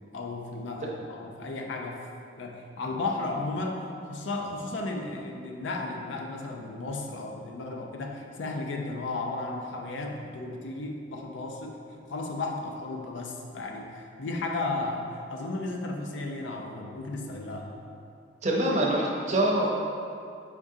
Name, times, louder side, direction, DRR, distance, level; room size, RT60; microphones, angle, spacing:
voice 1, 0.1-1.9 2.4-3.8 4.1-11.7 12.1-17.8, left 2 dB, 85° left, 2 dB, 0.5 m, -34 dB
voice 2, 18.4-19.7, right 1 dB, 40° right, -3 dB, 0.6 m, -24 dB
4.6 x 3.6 x 2.7 m, 2.4 s
head